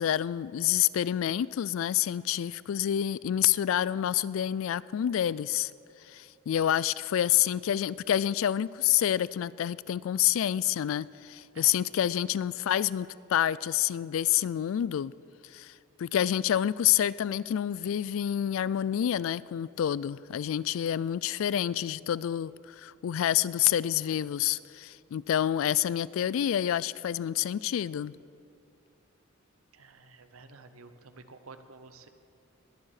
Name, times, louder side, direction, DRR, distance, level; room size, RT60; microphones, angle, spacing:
voice 1, 0.0-5.7 6.1-15.1 15.5-15.7 16.0-28.1, left 11 dB, 70° left, 21 dB, 0.3 m, -28 dB
voice 2, 29.7-32.1, right 4 dB, 85° right, 10 dB, 0.9 m, -51 dB
20.0 x 7.5 x 6.5 m, 2.6 s
head